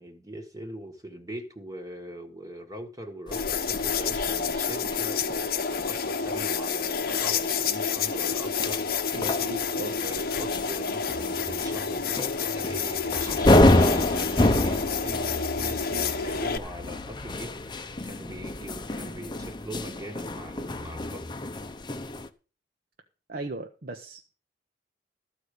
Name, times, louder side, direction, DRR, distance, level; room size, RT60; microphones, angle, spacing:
voice 1, 0.0-9.3 10.0-21.3, equal, 20° right, 1.5 m, -41 dB
sound 1, 3.3-16.6, left 5 dB, 55° left, 0.9 m, -29 dB
sound 2, 3.3-22.3, left 1 dB, 25° left, 0.8 m, -29 dB
voice 2, 9.1-10.0 15.9-16.0 23.3-24.3, right 1 dB, 55° right, 1.1 m, -37 dB
14.0 x 4.9 x 8.3 m
head